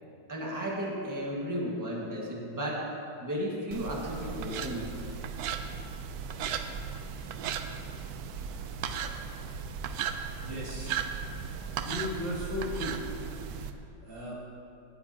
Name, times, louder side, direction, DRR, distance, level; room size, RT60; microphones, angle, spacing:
voice 1, 0.3-2.8 3.2-4.9, equal, 10° right, -3 dB, 1.4 m, -34 dB
sound 1, 3.7-13.7, right 7 dB, 70° right, 1.0 m, -36 dB
voice 2, 10.4-11.0 11.8-13.0 14.0-14.3, left 1 dB, 90° right, -6 dB, 3.2 m, -35 dB
19.0 x 9.2 x 2.8 m, 2.5 s
omnidirectional pair, 2.0 m